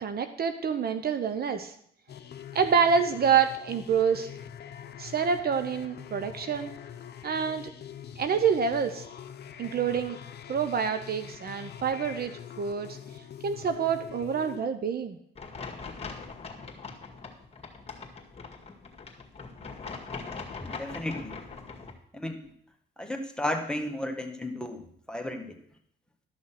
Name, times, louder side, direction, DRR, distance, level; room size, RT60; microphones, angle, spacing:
voice 1, 0.0-1.7 2.5-4.3 5.0-6.7 7.2-7.7 8.2-9.0 9.6-10.2 10.5-12.3 12.6-13.0 13.4-15.2, right 6 dB, 50° right, 9 dB, 0.9 m, -27 dB
sound 1, 2.1-14.6, left 9 dB, 55° left, 0.8 m, -44 dB
sound 2, 15.3-21.9, left 4 dB, 30° left, 2.0 m, -41 dB
voice 2, 20.6-21.4 22.1-22.4 23.0-25.5, left 1 dB, 5° left, 2 dB, 1.6 m, -33 dB
12.5 x 6.1 x 5.9 m, 0.67 s
cardioid pair, 90°, 20 cm